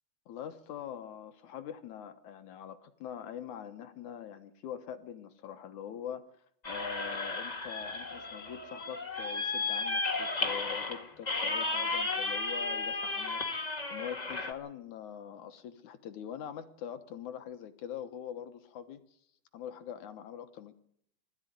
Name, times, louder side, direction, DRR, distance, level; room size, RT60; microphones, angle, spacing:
voice 1, 0.3-6.3 6.7-19.2 19.5-20.8, left 9 dB, 65° left, 9 dB, 2.2 m, -43 dB
sound 1, 6.6-14.5, left 3 dB, 30° left, 0.7 m, -34 dB
20.5 x 14.0 x 9.4 m, 0.69 s
omnidirectional pair, 4.3 m